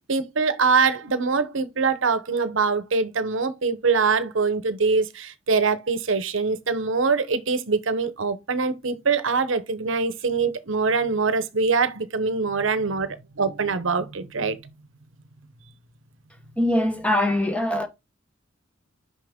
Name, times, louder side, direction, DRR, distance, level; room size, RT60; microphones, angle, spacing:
voice 1, 0.1-14.6, right 4 dB, 70° right, 0.9 m, -23 dB
voice 2, 16.6-17.9, left 1 dB, 5° left, 1.0 m, -22 dB
5.9 x 5.7 x 3.6 m
head